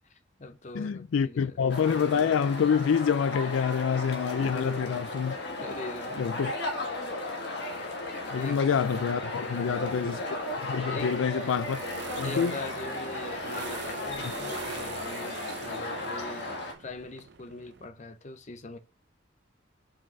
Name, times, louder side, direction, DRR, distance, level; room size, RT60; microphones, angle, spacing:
voice 1, 0.0-1.6 4.4-5.1 5.6-6.5 8.3-8.6 9.4-10.1 10.9-11.6 12.2-18.8, left 2 dB, 35° left, 0.7 m, -42 dB
voice 2, 0.7-5.3 6.2-6.5 8.3-10.2 10.7-11.8 12.2-12.5, left 7 dB, 85° left, 0.4 m, -27 dB
sound 1, 1.6-17.9, right 5 dB, 60° right, 0.6 m, -46 dB
sound 2, 1.7-16.7, left 2 dB, 60° left, 1.6 m, -35 dB
5.8 x 5.0 x 4.8 m
head